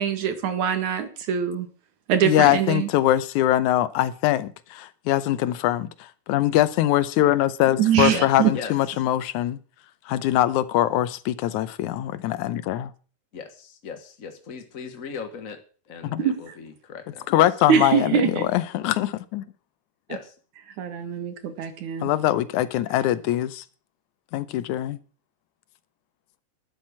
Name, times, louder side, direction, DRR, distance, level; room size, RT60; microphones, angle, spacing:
voice 1, 0.0-1.7 2.1-2.9 7.8-8.5 16.2-16.4 17.7-18.5 20.8-22.1, right 8 dB, 75° right, 3.0 m, -23 dB
voice 2, 2.2-5.9 6.3-9.6 10.1-12.9 16.0-16.2 17.3-19.4 22.0-23.6 24.3-25.0, left 13 dB, 80° left, 2.2 m, -22 dB
voice 3, 8.1-8.7 13.3-15.6 15.9-17.4 20.1-20.3, left 5 dB, 50° left, 1.0 m, -38 dB
12.0 x 7.5 x 8.5 m
omnidirectional pair, 3.5 m